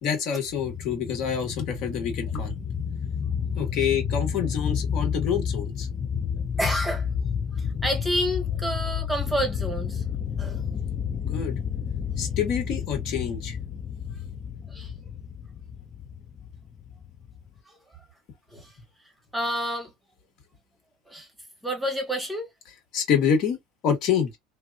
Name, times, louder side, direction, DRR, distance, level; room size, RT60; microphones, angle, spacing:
voice 1, 0.0-2.8 3.5-5.9 11.2-11.6 12.2-13.6 22.9-23.6 23.8-24.4, left 7 dB, 55° left, 1.3 m, -27 dB
sound 1, 0.6-17.6, left 7 dB, 30° left, 0.4 m, -31 dB
voice 2, 6.6-7.1 7.6-10.0 10.4-10.6 14.7-14.9 17.7-17.8 18.5-18.7 19.3-19.9 21.1-21.3 21.6-22.5, equal, 5° right, 0.9 m, -29 dB
2.8 x 2.2 x 2.3 m
supercardioid pair, 105°, 0 cm